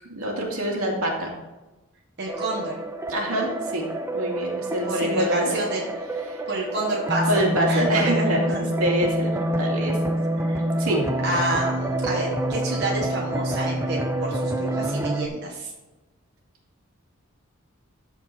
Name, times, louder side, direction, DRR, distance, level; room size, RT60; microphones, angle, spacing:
voice 1, 0.0-1.3 3.1-3.9 4.1-5.6 6.3-6.4 7.3-8.4 8.8-10.1 10.8-11.0, right 1 dB, 80° right, -1 dB, 2.3 m, -25 dB
voice 2, 2.2-2.7 4.9-5.9 6.5-8.7 10.4-10.8 11.2-15.7, right 1 dB, 50° right, -2 dB, 1.4 m, -29 dB
sound 1, 2.3-15.3, right 1 dB, 10° right, 0.5 m, -27 dB
13.5 x 4.6 x 4.3 m, 1.1 s
head